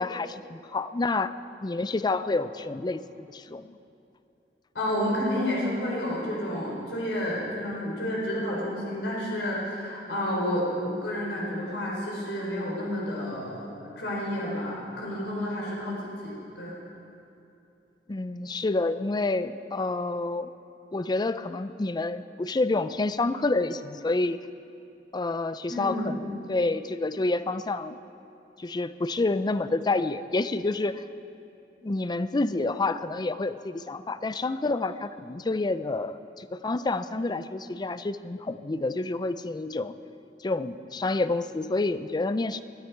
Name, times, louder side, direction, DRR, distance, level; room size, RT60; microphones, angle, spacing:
voice 1, 0.0-1.3 1.6-3.8 7.7-7.9 18.1-20.5 20.9-24.4 25.1-28.0 28.6-31.0 31.8-39.9 40.4-42.6, left 2 dB, 25° left, 13 dB, 0.4 m, -28 dB
voice 2, 4.7-16.8 25.7-26.1, left 1 dB, 85° left, -4 dB, 3.8 m, -30 dB
21.0 x 13.0 x 4.6 m, 2.8 s
head